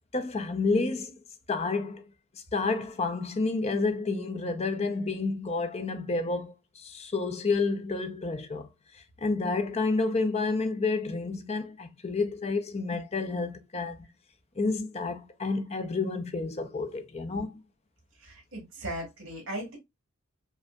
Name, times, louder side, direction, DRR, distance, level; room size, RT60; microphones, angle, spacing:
voice 1, 0.1-1.2 1.5-2.0 2.5-8.7 9.2-14.1 14.6-17.6, left 3 dB, 30° left, 0.5 m, -30 dB
voice 2, 18.2-19.8, right 1 dB, 65° right, 2.1 m, -37 dB
5.0 x 2.5 x 2.2 m
head